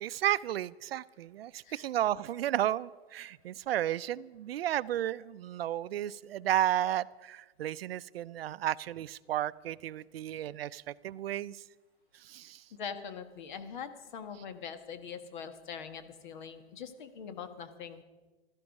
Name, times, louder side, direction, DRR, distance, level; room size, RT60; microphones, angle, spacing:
voice 1, 0.0-11.6 12.2-12.6, right 12 dB, 65° right, 18 dB, 0.5 m, -33 dB
voice 2, 12.7-18.0, left 7 dB, 45° left, 9 dB, 1.5 m, -43 dB
16.0 x 13.5 x 5.3 m, 1.2 s
hypercardioid pair, 170°, 33 cm